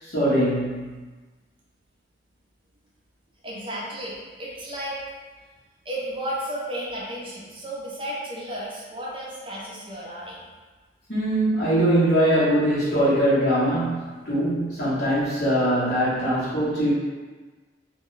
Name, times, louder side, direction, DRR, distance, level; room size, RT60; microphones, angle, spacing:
voice 1, 0.0-0.9 11.1-16.9, right 1 dB, 60° left, -11 dB, 1.0 m, -22 dB
voice 2, 3.4-5.0 5.8-10.4, right 1 dB, 30° right, -5 dB, 0.6 m, -33 dB
2.3 x 2.2 x 3.8 m, 1.3 s
head